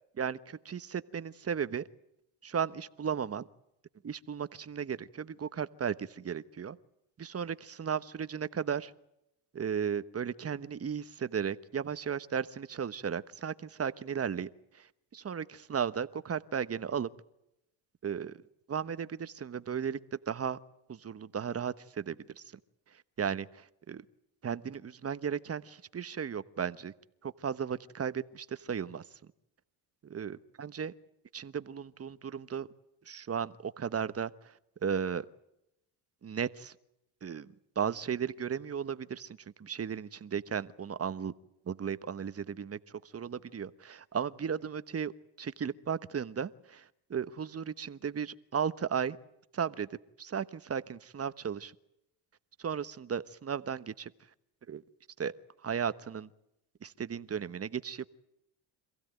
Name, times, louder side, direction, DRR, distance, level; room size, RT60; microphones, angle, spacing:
voice 1, 0.2-1.8 2.4-3.5 4.0-6.8 7.2-8.9 9.5-14.5 14.7-14.9 15.1-17.1 18.0-18.4 18.7-20.0 20.3-20.6 20.9-22.4 23.2-24.0 24.4-26.9 27.2-29.0 30.1-30.9 31.3-32.7 33.1-34.3 34.8-35.2 36.2-36.7 37.2-37.5 37.8-41.3 41.7-42.8 43.1-45.1 45.4-49.2 49.5-51.7 52.6-54.1 54.7-54.8 55.2-55.3 55.6-56.3 56.8-58.1, right 7 dB, 30° right, 14 dB, 1.1 m, -35 dB
26.5 x 16.0 x 9.2 m, 0.83 s
cardioid pair, 90°, 46 cm